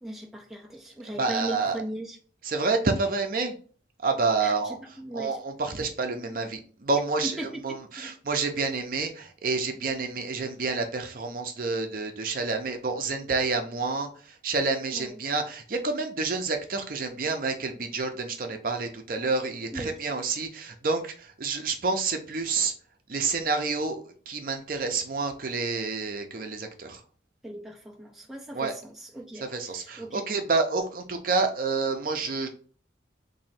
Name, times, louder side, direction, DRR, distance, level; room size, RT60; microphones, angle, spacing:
voice 1, 0.0-2.2 4.4-5.4 7.2-8.1 14.9-15.2 19.7-19.9 27.4-30.2, right 1 dB, ahead, -1 dB, 0.4 m, -38 dB
voice 2, 1.2-1.8 2.4-3.5 4.0-4.8 5.1-22.7 23.1-27.0 28.5-28.7 29.3-32.5, right 4 dB, 50° right, 5 dB, 0.5 m, -29 dB
3.0 x 2.7 x 4.2 m, 0.43 s
head